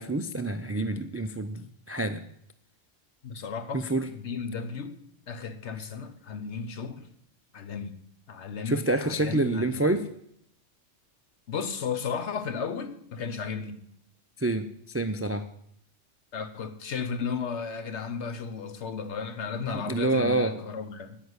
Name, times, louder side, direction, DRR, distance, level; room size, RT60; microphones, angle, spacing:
voice 1, 0.0-2.2 3.7-4.1 8.7-10.0 14.4-15.4 19.7-20.6, right 2 dB, 25° right, 0.3 m, -27 dB
voice 2, 3.2-3.9 4.1-5.0 5.3-7.1 7.5-8.0 8.3-9.9 11.5-13.8 16.3-21.2, left 5 dB, 65° left, 1.4 m, -34 dB
10.0 x 9.6 x 8.1 m
omnidirectional pair, 1.3 m